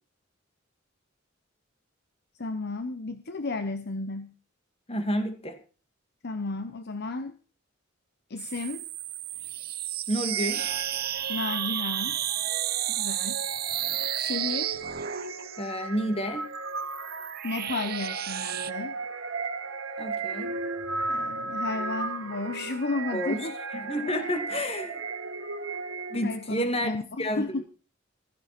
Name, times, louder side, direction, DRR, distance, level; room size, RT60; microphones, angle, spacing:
voice 1, 2.4-4.3 6.2-7.4 8.3-8.9 11.3-12.2 12.9-13.4 14.1-14.8 17.4-18.9 21.1-23.5 24.2-24.3 26.2-27.6, left 3 dB, 55° left, 9 dB, 1.0 m, -33 dB
voice 2, 4.9-5.6 10.1-10.6 15.6-16.5 20.0-20.5 23.1-23.4 23.7-25.0 26.1-26.9 27.2-27.6, equal, 30° left, 7 dB, 2.5 m, -30 dB
sound 1, 8.4-15.7 16.6-18.7, right 12 dB, 50° right, 0.8 m, -32 dB
sound 2, 10.3-26.5, right 4 dB, 70° right, 2.0 m, -36 dB
16.0 x 14.5 x 4.4 m, 0.37 s
head